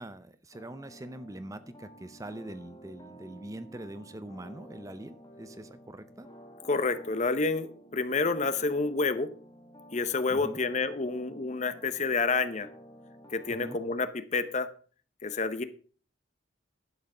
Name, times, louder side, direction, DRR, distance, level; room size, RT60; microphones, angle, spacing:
voice 1, 0.0-6.3 10.3-10.6 13.5-13.8, right 1 dB, 20° right, 12 dB, 0.6 m, -43 dB
sound 1, 0.5-14.0, right 1 dB, 20° left, 1.5 m, -51 dB
voice 2, 6.7-9.3 9.9-12.7 13.3-14.7 15.2-15.6, left 3 dB, 40° left, 12 dB, 0.8 m, -29 dB
11.0 x 7.4 x 5.5 m, 0.42 s
head